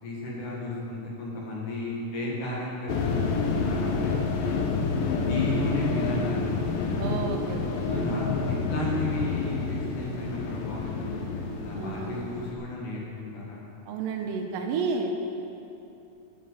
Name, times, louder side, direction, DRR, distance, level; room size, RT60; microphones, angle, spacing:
voice 1, 0.0-4.2 5.3-7.1 8.0-11.3 11.5-13.6, left 1 dB, 65° left, -4 dB, 3.6 m, -34 dB
sound 1, 2.9-12.5, left 4 dB, 85° left, 2.6 m, -29 dB
voice 2, 7.0-8.4 11.8-12.2 13.8-15.1, right 4 dB, 85° right, 3 dB, 2.5 m, -31 dB
13.5 x 8.6 x 5.9 m, 2.8 s
omnidirectional pair, 3.9 m